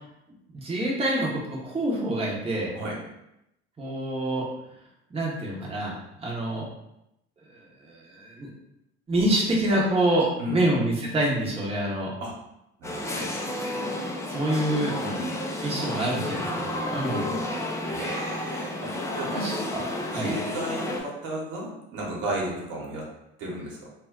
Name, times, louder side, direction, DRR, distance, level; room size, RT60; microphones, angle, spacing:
voice 1, 0.5-2.7 3.8-4.5 5.1-5.9 6.2-6.7 7.5-8.5 9.1-12.1 14.3-14.9 15.6-17.3 19.3-19.8 20.1-20.3, right 1 dB, 20° right, -4 dB, 0.8 m, -26 dB
sound 1, 12.8-21.0, left 1 dB, 10° left, 0.4 m, -31 dB
voice 2, 12.8-13.3 15.0-15.2 17.8-19.4 20.1-23.1 23.4-23.9, right 1 dB, 60° right, -3 dB, 1.1 m, -34 dB
2.3 x 2.1 x 3.6 m, 0.84 s
hypercardioid pair, 70°, 33 cm